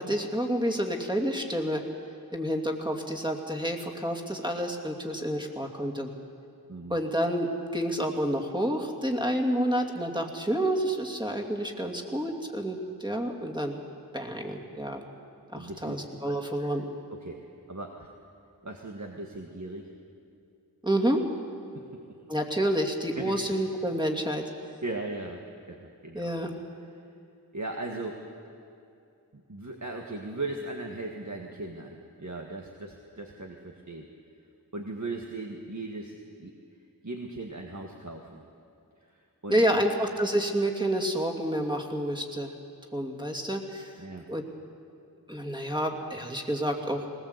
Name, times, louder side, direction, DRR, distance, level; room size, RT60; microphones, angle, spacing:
voice 1, 0.0-1.8 2.3-6.1 6.9-7.5 7.7-13.7 14.1-15.0 15.5-16.8 20.8-21.2 22.3-24.4 26.1-26.6 39.5-42.5 42.9-43.9 44.3-44.4 45.3-47.1, equal, 10° right, 2 dB, 2.6 m, -29 dB
voice 2, 15.5-16.7 17.1-17.4 17.7-18.1 18.6-19.9 21.7-22.0 23.2-23.4 24.8-25.4 25.7-26.4 26.8-26.9 27.5-28.2 29.3-34.1 34.7-36.5 37.0-38.4 39.0-39.9 44.0-44.3, right 2 dB, 45° right, 1 dB, 1.7 m, -38 dB
20.5 x 19.5 x 8.1 m, 2.6 s
wide cardioid pair, 45°, 38 cm